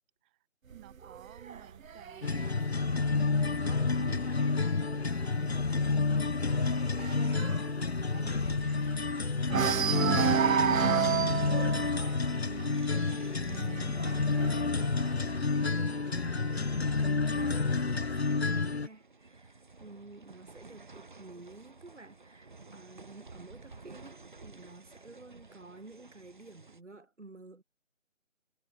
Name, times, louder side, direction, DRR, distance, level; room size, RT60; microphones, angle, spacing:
voice 1, 0.7-3.3 3.6-6.2 7.0-10.0 10.6-11.6, right 18 dB, 5° right, 3.8 m, -52 dB
sound 1, 0.7-4.3 4.7-5.1 5.3-5.4 5.8-9.1 9.5-16.0 16.9-17.9, right 6 dB, 90° right, 0.7 m, -32 dB
sound 2, 2.2-18.9, left 4 dB, 50° left, 1.0 m, -30 dB
voice 2, 7.2-7.7 12.3-17.6 17.8-27.6, right 3 dB, 60° right, 6.1 m, -51 dB
sound 3, 10.2-26.8, right 3 dB, 40° right, 2.8 m, -55 dB
figure-of-eight pair, 170°, 39 cm